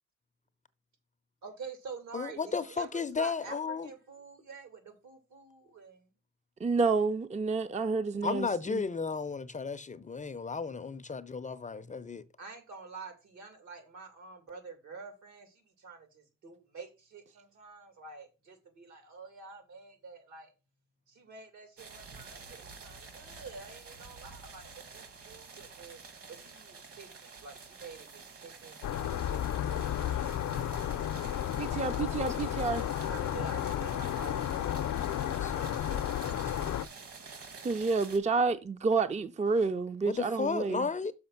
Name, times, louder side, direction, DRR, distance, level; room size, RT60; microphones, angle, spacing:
voice 1, 1.4-6.1 12.4-20.5 21.1-26.0 26.3-30.3 31.6-32.0 32.8-35.5, right 4 dB, 75° right, 2.6 m, -48 dB
voice 2, 2.1-3.9 8.2-12.2 35.3-36.0 36.3-36.8 40.0-41.1, left 5 dB, 25° left, 0.5 m, -34 dB
voice 3, 6.6-8.8 31.6-32.8 37.6-40.9, right 4 dB, 25° right, 0.6 m, -29 dB
sound 1, 21.8-38.2, right 4 dB, 50° right, 1.6 m, -49 dB
sound 2, 28.8-36.9, left 11 dB, 70° left, 0.6 m, -32 dB
6.5 x 4.8 x 5.9 m
cardioid pair, 90°, 30 cm